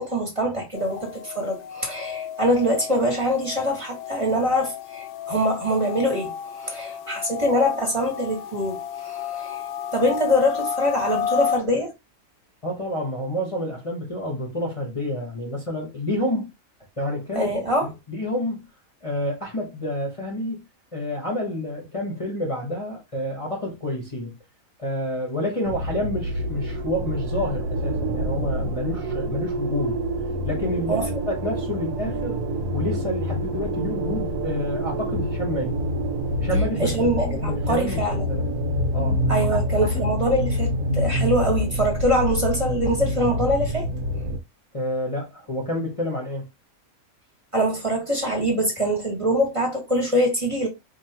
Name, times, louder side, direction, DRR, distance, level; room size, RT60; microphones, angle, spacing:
voice 1, 0.0-6.3 6.6-9.6 9.9-11.9 17.3-17.9 30.9-31.0 36.8-38.2 39.3-43.9 47.5-50.7, equal, 20° right, 1.4 m, -24 dB
sound 1, 0.7-11.6, left 8 dB, 80° left, 1.1 m, -32 dB
voice 2, 12.6-16.5 17.0-18.7 19.0-20.6 20.9-24.4 24.8-30.0 30.4-32.4 32.7-35.8 36.4-37.1 37.4-38.5 38.9-40.0 41.1-41.3 44.7-46.4, left 1 dB, 25° left, 1.0 m, -29 dB
sound 2, 25.6-44.4, equal, 90° right, 1.3 m, -26 dB
4.6 x 2.8 x 2.9 m
omnidirectional pair, 1.5 m